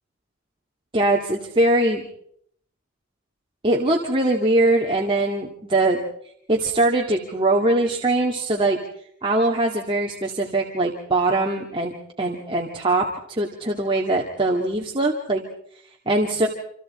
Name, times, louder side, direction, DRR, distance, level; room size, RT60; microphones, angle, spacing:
voice 1, 0.9-2.0 3.6-6.0 6.5-8.8 9.2-11.9 12.2-15.4 16.1-16.5, right 2 dB, 25° right, -1 dB, 2.2 m, -21 dB
28.0 x 27.0 x 4.3 m, 0.67 s
head